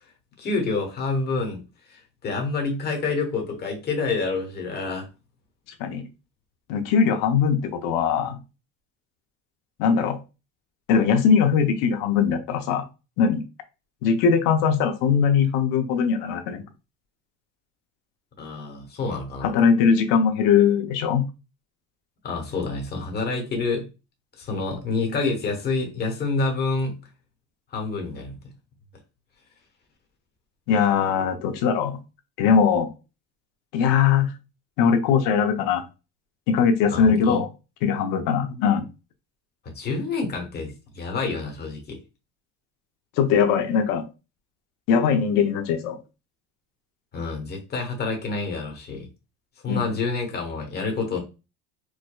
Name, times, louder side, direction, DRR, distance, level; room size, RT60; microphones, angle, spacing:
voice 1, 0.4-1.6 1.9-5.1 18.4-19.5 22.2-23.9 24.4-26.9 27.7-28.4 36.9-37.4 39.6-42.0 47.1-49.1 49.6-51.2, left 3 dB, 30° left, 2 dB, 1.1 m, -28 dB
voice 2, 6.7-8.4 9.8-10.2 10.9-12.8 13.2-13.4 14.0-16.6 19.4-21.2 30.7-32.0 32.4-32.9 33.7-34.3 34.8-35.8 36.5-37.5 37.8-38.9 43.2-44.0 44.9-46.0 49.7-49.8, left 6 dB, 70° left, 6 dB, 0.8 m, -20 dB
4.7 x 2.2 x 2.3 m, 0.29 s
cardioid pair, 140°, 34 cm